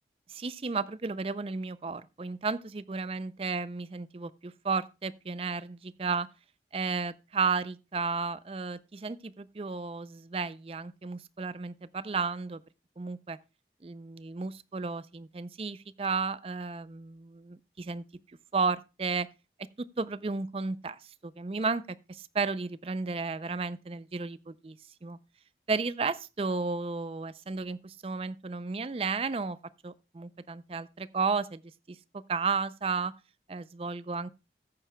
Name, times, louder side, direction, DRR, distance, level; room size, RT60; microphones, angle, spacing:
voice 1, 0.3-6.3 6.7-12.6 13.0-13.4 13.8-18.0 18.5-19.3 19.8-24.8 25.0-25.2 25.7-29.6 29.8-31.6 31.9-33.1 33.5-34.3, right 4 dB, 35° right, 0.4 m, -33 dB
14.5 x 9.4 x 2.2 m
head